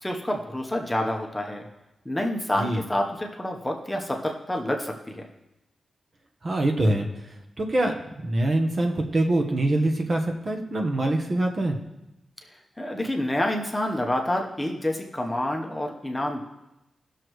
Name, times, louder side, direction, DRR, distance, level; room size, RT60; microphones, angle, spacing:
voice 1, 0.0-1.6 2.0-5.3 12.8-16.4, left 1 dB, 10° left, 1 dB, 0.9 m, -28 dB
voice 2, 6.4-7.1 7.6-7.9 8.2-11.8, right 1 dB, 35° right, 3 dB, 1.0 m, -24 dB
18.5 x 6.5 x 3.1 m, 0.93 s
wide cardioid pair, 155°, 0 cm